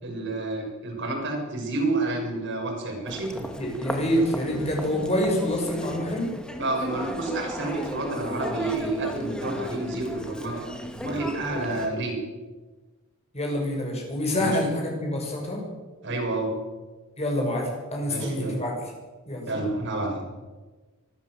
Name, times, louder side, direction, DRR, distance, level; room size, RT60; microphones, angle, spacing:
voice 1, 0.0-3.5 6.6-10.7 11.0-12.1 14.4-14.6 16.0-16.5 18.1-18.6 19.5-20.2, right 2 dB, 60° right, 0 dB, 6.4 m, -29 dB
Human voice, 3.0-11.9, left 1 dB, 5° left, 2.1 m, -35 dB
voice 2, 3.6-6.3 13.3-15.6 17.2-18.7 19.3-19.5, left 1 dB, 30° left, 0 dB, 7.1 m, -27 dB
24.5 x 14.0 x 7.9 m, 1.2 s
head